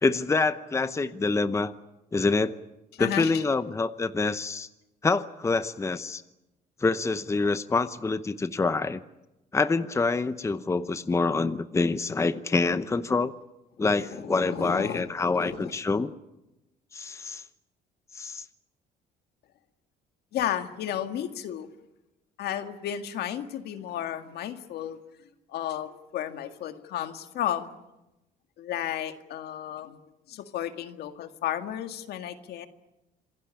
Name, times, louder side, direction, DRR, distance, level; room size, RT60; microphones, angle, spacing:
voice 1, 0.0-1.7 2.1-2.6 3.0-4.7 5.0-6.2 6.8-9.0 9.5-13.3 13.8-16.1 16.9-17.4 18.1-18.5, left 3 dB, 15° left, 12 dB, 0.9 m, -26 dB
voice 2, 2.9-3.4 14.4-15.7 20.3-21.7 22.4-25.0 25.5-27.7 28.6-30.0 30.3-32.7, left 11 dB, 70° left, 8 dB, 2.0 m, -33 dB
27.0 x 16.5 x 9.9 m, 0.98 s
cardioid pair, 110°, 17 cm